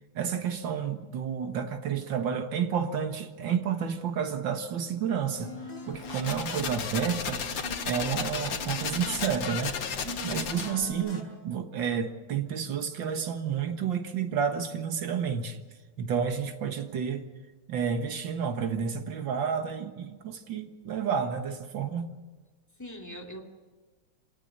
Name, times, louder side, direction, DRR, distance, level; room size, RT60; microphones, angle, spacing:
voice 1, 0.2-5.5 5.9-7.5 7.9-9.8 10.2-15.6 16.0-17.3 17.7-22.1, right 7 dB, 80° right, 6 dB, 2.2 m, -30 dB
sound 1, 5.3-11.2, left 2 dB, 60° left, 4.9 m, -43 dB
sound 2, 5.9-10.9, left 6 dB, 80° left, 2.2 m, -34 dB
voice 2, 10.2-10.5 22.8-23.4, equal, 10° left, 1 dB, 2.6 m, -42 dB
25.5 x 18.5 x 6.7 m, 1.3 s
omnidirectional pair, 2.0 m